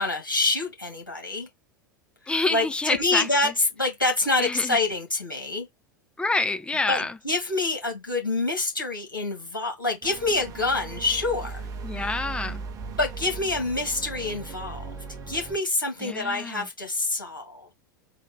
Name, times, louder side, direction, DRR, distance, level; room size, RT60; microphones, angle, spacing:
voice 1, 0.0-1.5 2.5-5.7 6.9-11.7 13.0-14.9 15.3-17.7, left 2 dB, 85° left, 2.2 m, -26 dB
voice 2, 2.3-3.5 4.4-4.8 6.2-7.2 11.8-12.6 16.0-16.7, left 3 dB, 10° left, 0.6 m, -28 dB
sound 1, 10.0-15.6, right 4 dB, 35° right, 1.2 m, -37 dB
4.0 x 2.8 x 4.6 m
figure-of-eight pair, 85°, 11 cm